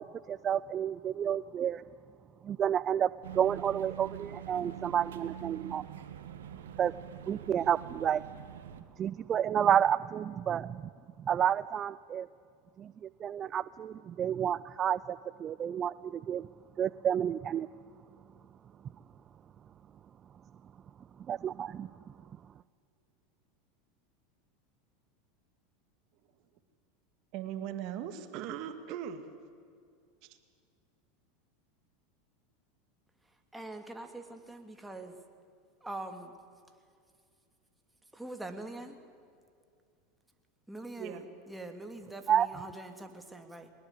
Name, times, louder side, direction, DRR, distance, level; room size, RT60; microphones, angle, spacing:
voice 1, 0.0-1.8 2.4-5.8 6.8-6.9 7.2-8.2 9.0-10.9 11.2-12.3 12.8-16.5 16.8-17.7 21.3-21.9 42.3-42.5, right 9 dB, 35° right, 17 dB, 0.5 m, -30 dB
sound 1, 3.2-8.8, right 10 dB, 85° right, 1.6 m, -45 dB
voice 2, 27.3-29.2 41.0-41.2, right 10 dB, 55° right, 9 dB, 2.1 m, -39 dB
voice 3, 33.2-35.2 35.8-36.4 38.1-39.0 40.7-43.7, right 2 dB, 5° right, 5 dB, 2.6 m, -44 dB
22.0 x 19.5 x 8.3 m, 2.3 s
hypercardioid pair, 100°, 0 cm